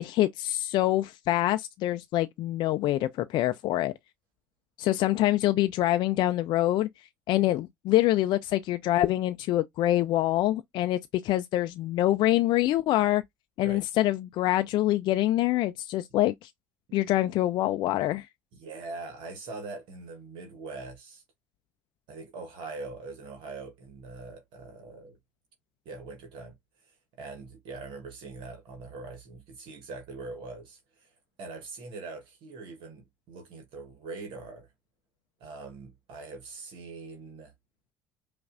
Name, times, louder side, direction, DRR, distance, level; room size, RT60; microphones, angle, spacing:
voice 1, 0.0-3.9 4.8-6.9 7.3-13.2 13.6-16.5 16.9-18.3, left 15 dB, 55° left, 0.4 m, -25 dB
voice 2, 18.5-21.2 22.1-25.2 25.8-26.5 27.2-31.1 31.4-34.7 35.4-37.5, right 3 dB, 60° right, 1.3 m, -42 dB
5.3 x 2.5 x 2.4 m
hypercardioid pair, 75°, 9 cm